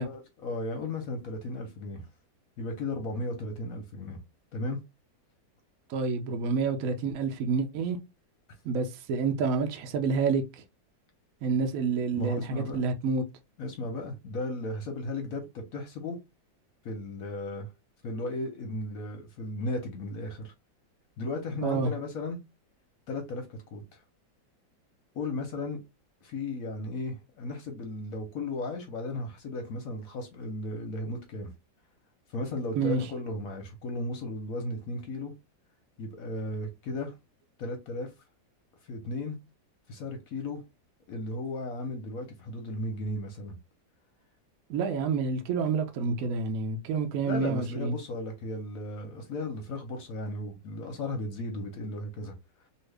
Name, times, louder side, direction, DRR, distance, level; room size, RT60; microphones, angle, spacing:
voice 1, 0.0-2.0 2.6-4.2 4.5-4.8 12.1-12.8 13.6-16.2 16.8-17.7 18.0-20.5 21.2-22.4 23.1-24.0 25.1-25.8 26.2-31.5 32.3-35.3 36.0-37.1 37.6-38.1 38.9-39.4 39.9-40.6 41.1-43.6 47.2-52.3, left 2 dB, 60° left, 0.9 m, -35 dB
voice 2, 5.9-8.0 8.6-10.6 11.4-13.2 21.6-21.9 32.8-33.1 44.7-47.9, right 4 dB, 75° right, 0.8 m, -28 dB
2.8 x 2.7 x 3.2 m
omnidirectional pair, 2.0 m